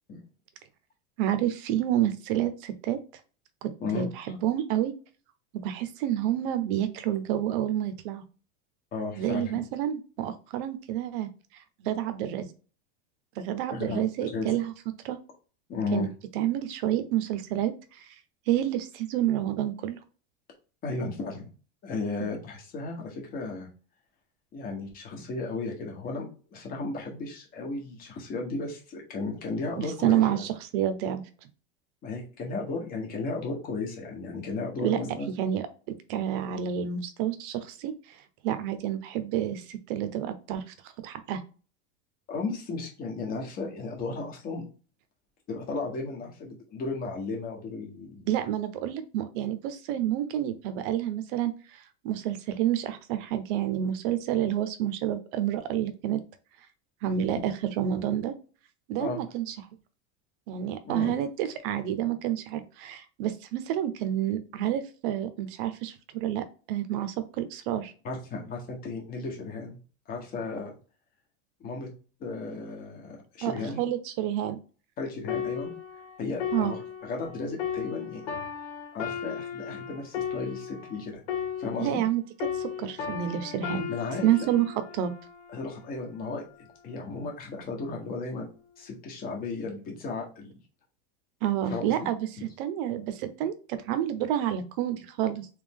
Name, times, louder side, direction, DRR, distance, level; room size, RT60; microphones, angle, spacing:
voice 1, 1.2-3.0 3.6-4.9 5.6-8.2 9.2-11.3 11.8-12.5 13.4-14.7 15.0-15.2 15.9-16.1 16.3-18.0 18.5-20.0 29.8-31.2 34.8-35.7 36.1-37.9 38.4-40.6 41.0-41.4 48.3-56.2 57.0-58.3 58.9-59.5 60.5-67.9 73.4-74.6 76.5-76.7 81.8-82.2 82.6-83.9 84.2-84.6 84.9-85.1 91.4-92.3 92.6-95.5, right 11 dB, 50° right, 11 dB, 0.7 m, -29 dB
voice 2, 3.8-4.4 8.9-9.5 13.7-14.6 15.7-16.1 20.8-21.5 21.8-23.7 24.5-26.2 26.5-30.5 32.0-35.3 42.3-44.6 45.5-48.3 57.1-57.2 59.0-59.2 60.9-61.1 68.0-69.8 70.1-70.7 71.6-71.9 72.2-73.8 75.0-75.7 76.2-78.3 78.9-81.2 81.6-82.0 83.9-84.5 85.5-86.4 86.8-88.5 88.8-90.5 91.7-92.1 92.4-92.5, left 3 dB, 25° left, 1 dB, 1.1 m, -34 dB
sound 1, 75.3-82.1 82.4-86.0 86.6-86.8, left 8 dB, 75° left, 1.6 m, -36 dB
3.5 x 3.1 x 3.6 m, 0.37 s
supercardioid pair, 170°, 33 cm